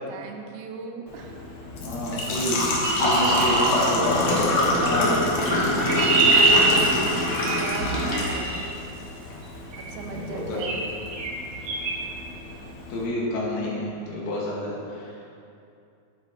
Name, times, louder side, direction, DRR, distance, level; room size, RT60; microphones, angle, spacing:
voice 1, 0.1-1.4 4.2-4.6 6.7-8.8 9.8-10.9, right 5 dB, 85° right, 3 dB, 2.6 m, -39 dB
Engine / Trickle dribble / Fill (with liquid), 1.1-13.0, left 1 dB, 65° left, 2.0 m, -26 dB
voice 2, 1.8-2.7 3.0-4.1 4.8-5.3 7.4-7.5 10.1-10.6 12.9-15.2, equal, 85° left, -5 dB, 3.5 m, -29 dB
Chirp tweet, 2.8-4.5 5.5-8.6 9.7-10.0 10.6-10.9 11.1-11.3 11.7-12.0, right 3 dB, 65° right, 2.1 m, -24 dB
9.9 x 8.9 x 2.9 m, 2.5 s
omnidirectional pair, 4.3 m